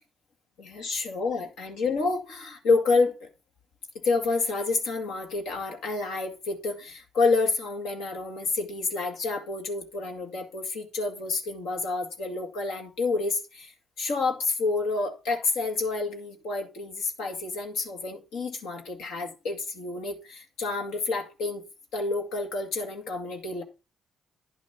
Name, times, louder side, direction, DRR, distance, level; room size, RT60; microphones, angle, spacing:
voice 1, 0.6-3.3 4.0-21.6 21.9-23.6, left 3 dB, 85° left, 2.0 m, -29 dB
10.5 x 6.0 x 4.3 m
cardioid pair, 90°, 0 cm